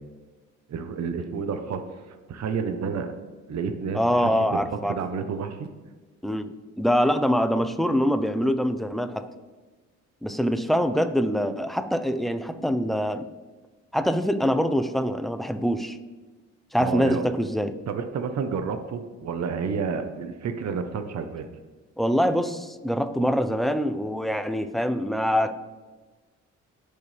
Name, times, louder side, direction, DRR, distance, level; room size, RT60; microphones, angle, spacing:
voice 1, 0.7-1.8 2.1-3.1 3.5-5.7 16.8-17.2 17.9-21.5, right 5 dB, 60° right, 7 dB, 1.1 m, -30 dB
voice 2, 3.9-4.9 6.2-9.2 10.2-13.2 13.9-16.0 16.7-17.7 22.0-25.5, equal, ahead, 9 dB, 0.8 m, -24 dB
18.5 x 7.0 x 3.5 m, 1.3 s
cardioid pair, 90°, 30 cm